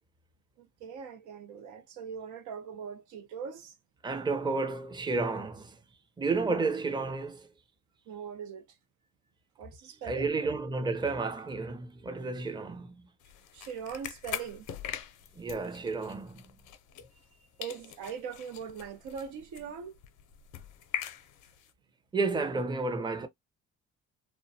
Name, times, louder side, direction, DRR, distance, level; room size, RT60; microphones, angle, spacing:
voice 1, 0.6-3.7 8.1-8.7 9.6-10.3 13.5-14.7 17.6-20.0, right 7 dB, 85° right, 0.6 m, -41 dB
voice 2, 4.0-5.8 6.2-7.5 10.0-13.1 15.4-16.6 22.1-23.3, right 3 dB, 15° right, 0.5 m, -31 dB
sound 1, 13.2-17.4 17.6-21.7, left 10 dB, 85° left, 0.5 m, -43 dB
2.5 x 2.1 x 2.6 m
cardioid pair, 90°, 30 cm